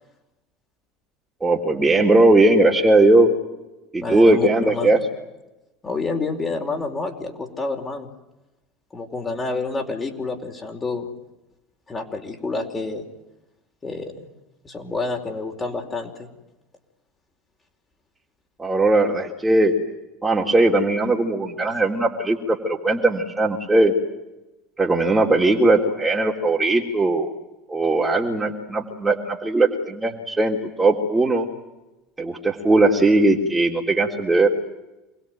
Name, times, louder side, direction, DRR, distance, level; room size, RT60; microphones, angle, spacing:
voice 1, 1.4-3.3 3.9-5.0 18.6-19.7 20.2-23.9 24.8-27.3 27.7-31.5 32.2-34.5, right 2 dB, 15° right, -1 dB, 3.8 m, -19 dB
voice 2, 4.0-5.0 5.8-8.1 8.9-11.1 11.9-13.0 13.8-14.1 14.6-16.3, left 3 dB, 20° left, 2 dB, 4.8 m, -28 dB
28.0 x 21.0 x 9.4 m, 1.0 s
figure-of-eight pair, 70°, 0 cm